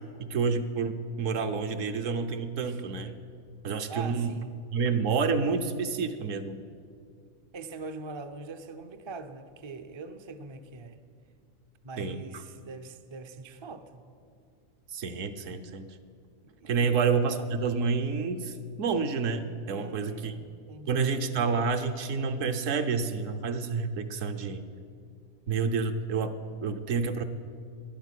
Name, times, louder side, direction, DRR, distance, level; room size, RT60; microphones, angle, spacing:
voice 1, 0.2-3.1 3.6-4.3 4.7-6.6 12.0-12.2 14.9-15.9 16.6-20.3 20.9-24.6 25.5-27.2, right 5 dB, 65° right, 8 dB, 1.1 m, -29 dB
voice 2, 3.9-4.5 7.5-11.0 11.8-14.0 16.4-17.0 19.7-21.2, right 3 dB, 40° right, 7 dB, 0.4 m, -43 dB
11.5 x 8.9 x 9.9 m, 2.3 s
omnidirectional pair, 1.5 m